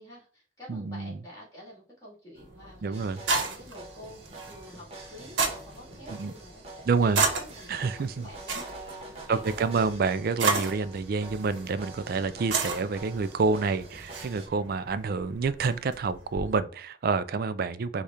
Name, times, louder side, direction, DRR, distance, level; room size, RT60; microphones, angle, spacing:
voice 1, 0.0-8.7 9.0-9.9, equal, 20° left, 2.2 m, -49 dB
voice 2, 0.7-1.1 2.8-3.2 6.1-6.3 6.9-7.2 7.7-8.3 9.3-18.0, right 4 dB, 50° right, 0.3 m, -28 dB
sound 1, 2.4-16.6, right 4 dB, 85° right, 1.0 m, -34 dB
sound 2, 2.9-14.5, right 2 dB, 30° right, 1.1 m, -46 dB
4.9 x 2.4 x 4.1 m
head